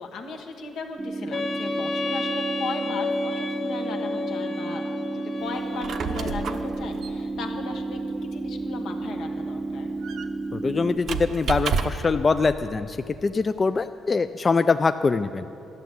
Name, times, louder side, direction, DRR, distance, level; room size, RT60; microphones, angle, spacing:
voice 1, 0.0-4.9 5.1-9.9, left 4 dB, 80° left, 3 dB, 1.3 m, -37 dB
sound 1, 1.0-11.0, right 2 dB, 25° right, 0.6 m, -32 dB
Wind instrument woodwind instrument, 1.3-6.4, left 3 dB, 55° left, 1.5 m, -32 dB
Squeak, 5.6-12.2, right 6 dB, 65° right, 0.6 m, -32 dB
voice 2, 10.5-13.0 13.2-15.4, left 4 dB, 35° left, 10 dB, 0.3 m, -23 dB
11.5 x 6.9 x 9.2 m, 2.9 s
cardioid pair, 90°, 0 cm